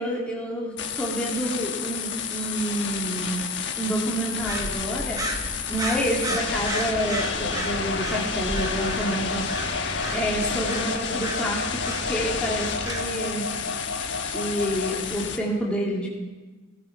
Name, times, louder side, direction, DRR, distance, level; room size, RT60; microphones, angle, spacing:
voice 1, 0.0-3.4 3.8-5.2 5.7-9.9 10.1-13.5 14.2-16.1, equal, 5° left, -5 dB, 2.6 m, -28 dB
sound 1, 0.8-15.4, left 7 dB, 55° left, 1.2 m, -31 dB
sound 2, 4.4-13.0, right 1 dB, 15° right, 1.1 m, -34 dB
sound 3, 6.3-15.1, left 3 dB, 90° left, 0.8 m, -34 dB
17.5 x 10.0 x 4.7 m, 1.3 s
head